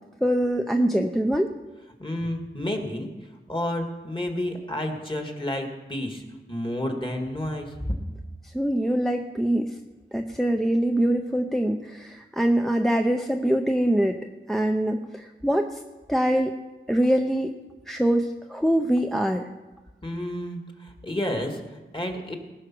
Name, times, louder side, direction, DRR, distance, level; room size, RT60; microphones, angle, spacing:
voice 1, 0.2-1.5 8.5-9.8 10.1-14.2 14.5-15.8 16.1-16.5 16.9-17.5 17.9-19.5, right 1 dB, ahead, 4 dB, 0.7 m, -23 dB
voice 2, 2.0-3.1 3.5-6.2 6.5-7.8 20.0-22.3, left 1 dB, 25° left, 3 dB, 2.0 m, -30 dB
19.5 x 6.5 x 6.1 m, 1.2 s
wide cardioid pair, 70°, 21 cm